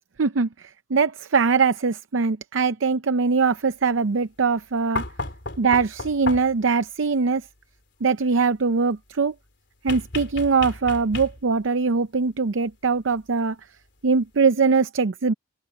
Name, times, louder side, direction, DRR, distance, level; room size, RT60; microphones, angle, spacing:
voice 1, 0.2-5.0 5.6-7.5 8.0-9.3 9.8-13.6 14.0-15.3, right 4 dB, 85° right, 0.6 m, -22 dB
sound 1, 5.0-6.7 9.9-11.6 13.2-13.3, left 3 dB, 65° left, 3.7 m, -33 dB
open air
head